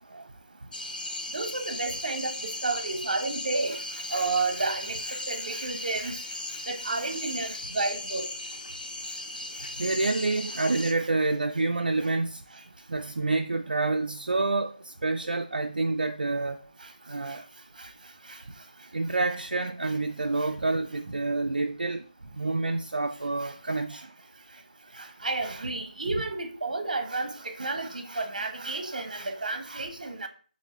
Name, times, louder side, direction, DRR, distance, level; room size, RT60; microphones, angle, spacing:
sound 1, 0.7-10.9, left 1 dB, 70° left, 0.7 m, -37 dB
voice 1, 1.3-3.8 4.1-6.2 6.7-8.3 17.3-17.4 17.8-17.9 18.3-18.4 23.4-23.5 25.0-30.3, right 3 dB, 60° right, 0.8 m, -31 dB
voice 2, 9.8-12.4 12.9-16.6 17.1-17.4 18.9-22.0 22.3-24.1, right 3 dB, 85° right, 0.3 m, -28 dB
6.5 x 2.5 x 3.0 m
figure-of-eight pair, 165°, 5 cm